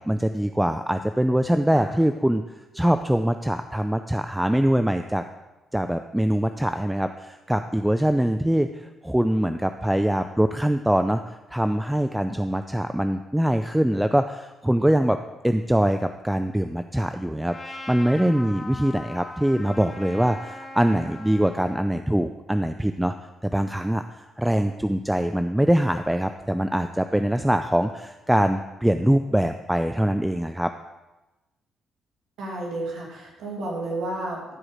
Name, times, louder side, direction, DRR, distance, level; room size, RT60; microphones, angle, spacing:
voice 1, 0.0-2.4 2.7-5.2 5.7-15.2 15.4-23.1 23.4-30.7, right 1 dB, 5° right, 8 dB, 0.4 m, -23 dB
Trumpet, 17.5-21.8, left 2 dB, 20° left, 2.1 m, -40 dB
voice 2, 32.4-34.5, right 2 dB, 80° right, -3 dB, 2.3 m, -31 dB
14.5 x 4.9 x 5.0 m, 1.1 s
cardioid pair, 90°, 0 cm